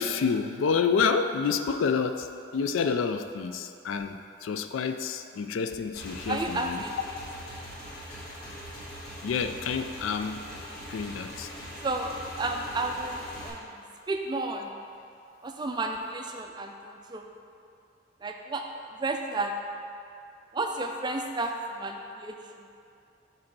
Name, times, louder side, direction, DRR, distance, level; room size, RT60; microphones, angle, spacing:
voice 1, 0.0-6.8 9.2-10.4 10.9-11.5, left 5 dB, 85° left, 9 dB, 0.4 m, -28 dB
Motorcycle / Engine, 5.9-13.5, equal, 50° left, 1.5 m, -41 dB
voice 2, 6.3-7.2 11.8-14.7 15.4-17.3 18.2-19.5 20.5-22.7, right 2 dB, 20° right, 3 dB, 0.4 m, -32 dB
5.1 x 4.2 x 5.9 m, 2.5 s
head